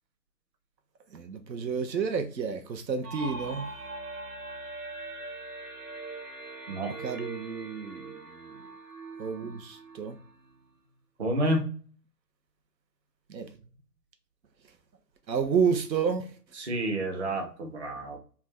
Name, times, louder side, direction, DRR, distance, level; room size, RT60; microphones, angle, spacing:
voice 1, 1.1-3.7 7.0-8.4 9.2-10.2 13.3-13.5 15.3-16.2, right 6 dB, 85° right, 0.7 m, -30 dB
sound 1, 3.0-10.7, right 2 dB, 65° right, 1.2 m, -42 dB
voice 2, 11.2-11.7 16.5-18.2, right 1 dB, 45° right, 0.7 m, -29 dB
2.4 x 2.2 x 3.3 m
figure-of-eight pair, 150°, 50 cm